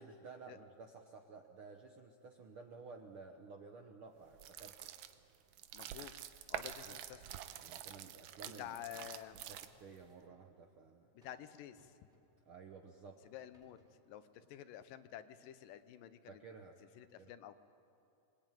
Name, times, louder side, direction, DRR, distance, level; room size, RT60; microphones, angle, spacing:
voice 1, 0.0-4.9 6.6-7.0 7.6-8.7 9.0-11.1 12.4-13.2 16.3-16.8 17.2-17.3, right 4 dB, 65° right, 3 dB, 1.3 m, -54 dB
sound 1, 4.3-10.0, right 11 dB, 80° right, 2.4 m, -47 dB
voice 2, 5.7-7.2 8.6-9.4 11.1-12.0 13.3-13.8 14.1-16.4 17.0-17.6, left 11 dB, 80° left, 12 dB, 2.5 m, -50 dB
sound 2, 7.5-8.0 9.5-10.5 11.2-11.5 11.8-12.5 13.2-14.0, left 1 dB, ahead, 3.4 m, -71 dB
25.0 x 21.5 x 9.1 m, 2.7 s
omnidirectional pair, 3.9 m